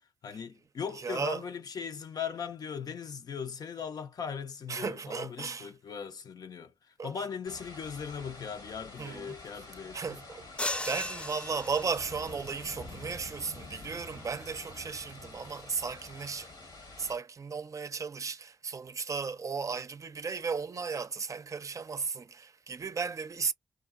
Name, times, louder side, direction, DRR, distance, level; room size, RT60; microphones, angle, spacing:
voice 1, 0.2-10.2, left 6 dB, 70° left, 0.6 m, -39 dB
voice 2, 1.0-1.4 4.7-5.7 7.0-7.1 9.0-9.3 9.9-16.5 17.0-23.5, right 5 dB, 50° right, 0.5 m, -35 dB
sound 1, 7.4-17.2, left 2 dB, 85° left, 1.4 m, -48 dB
sound 2, 10.6-12.4, left 1 dB, 15° left, 0.5 m, -36 dB
2.8 x 2.4 x 2.5 m
cardioid pair, 50°, 7 cm